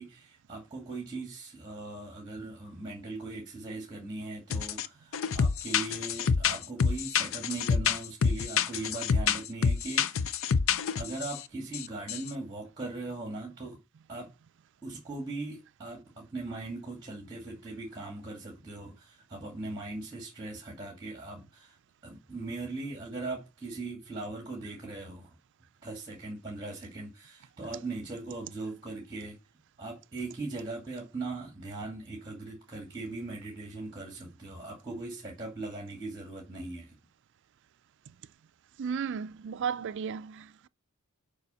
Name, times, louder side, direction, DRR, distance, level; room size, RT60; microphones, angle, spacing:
voice 1, 0.0-10.3 11.0-13.8 14.1-14.3 14.8-21.8 22.0-25.4 25.8-29.4 29.8-37.0, right 2 dB, 20° right, 2.3 m, -39 dB
sound 1, 4.5-4.9 5.1-11.4 11.7-12.3, left 6 dB, 65° left, 0.5 m, -27 dB
voice 2, 38.8-40.7, right 7 dB, 55° right, 0.4 m, -34 dB
6.9 x 5.0 x 6.9 m
head